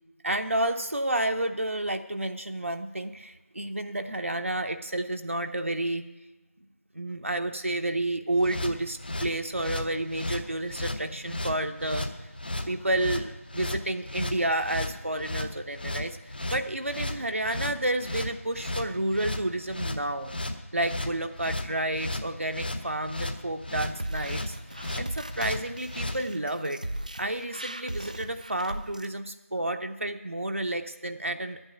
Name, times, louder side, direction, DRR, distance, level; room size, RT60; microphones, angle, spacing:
voice 1, 0.2-6.0 6.9-12.3 12.6-20.3 20.7-24.6 25.0-26.8 27.2-31.6, right 1 dB, 60° right, 5 dB, 0.8 m, -30 dB
sound 1, 8.4-26.2, left 1 dB, 35° left, 0.9 m, -34 dB
sound 2, 23.9-29.1, right 1 dB, 30° right, 0.4 m, -38 dB
11.0 x 9.0 x 8.6 m, 1.1 s
figure-of-eight pair, 170°, 8 cm